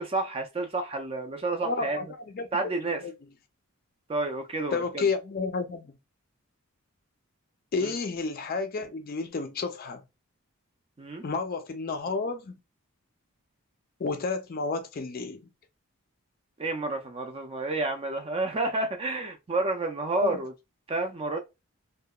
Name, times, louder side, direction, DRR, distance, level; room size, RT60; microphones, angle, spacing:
voice 1, 0.0-2.0 2.5-3.0 4.1-5.0 7.8-7.9 11.0-11.2 16.6-20.5 20.9-21.4, right 2 dB, 25° right, 0.4 m, -30 dB
voice 2, 1.6-2.1 2.3-2.5 3.0-3.1 4.7-6.0 7.7-10.0 11.2-12.6 14.0-15.4 20.2-20.4, left 4 dB, 40° left, 0.4 m, -31 dB
2.8 x 2.2 x 2.2 m
head